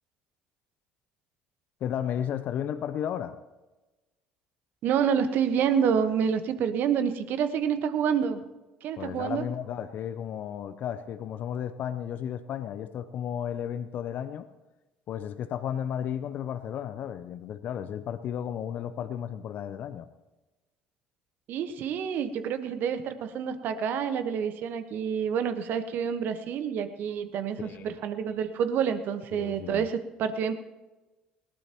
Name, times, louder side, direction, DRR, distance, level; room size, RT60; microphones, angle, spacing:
voice 1, 1.8-3.4 9.0-14.5 15.1-20.1 27.6-27.9 29.3-29.9, left 9 dB, 55° left, 12 dB, 0.8 m, -33 dB
voice 2, 4.8-8.4 8.8-9.4 21.5-30.5, right 7 dB, 55° right, 9 dB, 1.3 m, -28 dB
20.0 x 18.5 x 3.0 m, 1.1 s
hypercardioid pair, 60°, 4 cm